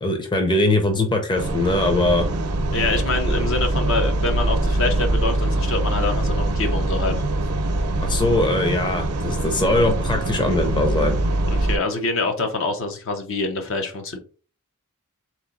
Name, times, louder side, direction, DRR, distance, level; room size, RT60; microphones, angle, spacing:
voice 1, 0.0-2.3 3.3-3.4 8.0-11.2, left 2 dB, 20° left, 4 dB, 0.6 m, -21 dB
sound 1, 1.4-11.8, right 2 dB, 90° right, 0.7 m, -23 dB
voice 2, 2.7-7.2 11.5-14.2, left 3 dB, 60° left, 5 dB, 0.8 m, -25 dB
3.8 x 3.1 x 3.9 m, 0.39 s
head